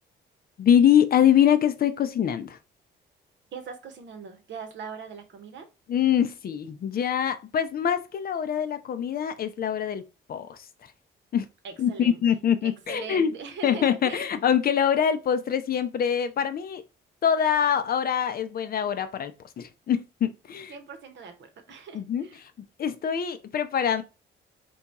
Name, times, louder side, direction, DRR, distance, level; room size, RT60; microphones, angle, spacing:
voice 1, 0.6-2.6 5.9-10.0 10.3-10.6 11.3-11.5 11.8-13.3 13.6-16.8 17.2-20.7 21.9-22.3 22.8-24.0, left 9 dB, 50° left, 0.5 m, -24 dB
voice 2, 3.5-5.7 11.6-12.2 12.6-14.3 20.7-22.4, right 5 dB, 65° right, 0.9 m, -41 dB
3.5 x 2.3 x 4.1 m
cardioid pair, 90°, 20 cm